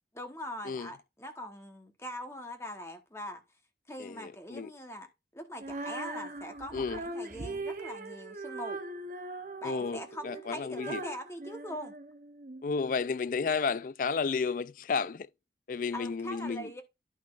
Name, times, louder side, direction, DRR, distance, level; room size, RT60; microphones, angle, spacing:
voice 1, 0.1-3.4 3.9-5.1 5.3-8.8 9.6-11.9 15.9-16.8, equal, 15° left, 1.1 m, -42 dB
voice 2, 4.0-4.7 6.7-7.0 9.6-11.0 12.6-15.3 15.7-16.7, left 5 dB, 45° left, 0.4 m, -32 dB
Female singing, 5.6-12.6, right 2 dB, 45° right, 0.8 m, -40 dB
11.5 x 5.8 x 2.5 m
head